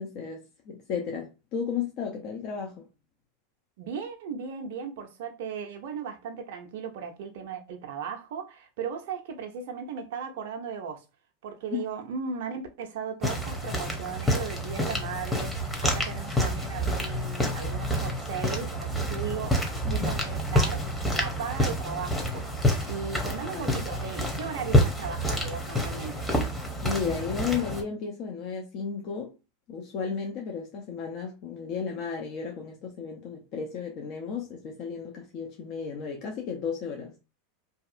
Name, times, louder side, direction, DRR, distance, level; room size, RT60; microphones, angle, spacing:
voice 1, 0.0-2.8 11.7-11.8 19.8-20.1 23.5-23.8 26.8-29.3 29.7-37.1, left 6 dB, 50° left, 0.6 m, -34 dB
voice 2, 3.8-11.0 11.4-20.9 21.2-26.3, right 6 dB, 65° right, 0.4 m, -37 dB
sound 1, 13.2-27.8, equal, 10° left, 0.8 m, -28 dB
2.7 x 2.3 x 2.5 m
hypercardioid pair, 95°, 0 cm